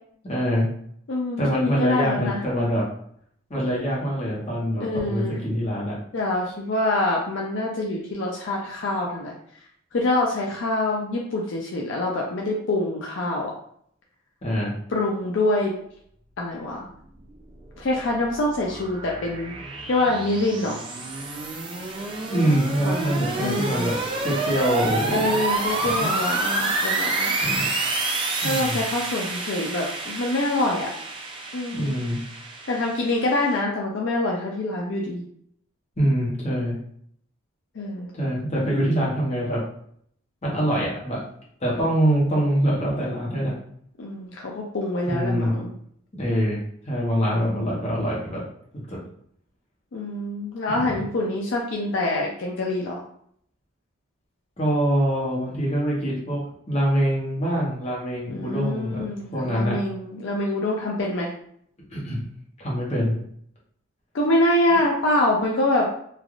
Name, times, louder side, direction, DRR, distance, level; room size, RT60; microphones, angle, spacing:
voice 1, 0.2-0.7 1.4-2.9 3.5-6.0 14.4-14.8 22.3-25.4 25.8-26.1 27.4-27.7 28.4-28.8 31.7-32.2 36.0-36.8 38.1-39.7 40.4-41.2 41.6-43.6 45.0-45.6 46.1-48.5 48.7-49.0 50.8-51.0 54.6-59.8 61.9-62.2 62.6-63.2, equal, 30° left, -4 dB, 0.9 m, -24 dB
voice 2, 1.1-2.4 4.8-5.4 6.1-9.3 9.9-13.5 14.9-15.7 16.4-16.9 17.8-19.5 19.9-20.8 22.8-23.9 25.1-27.3 28.4-30.9 31.5-31.9 32.7-35.2 37.8-38.1 44.0-45.7 47.4-47.8 49.9-53.0 58.3-61.3 64.1-65.9, left 2 dB, 60° left, -2 dB, 0.4 m, -25 dB
sound 1, 17.5-33.6, right 2 dB, 25° right, 0.4 m, -29 dB
3.2 x 2.4 x 2.4 m, 0.67 s
head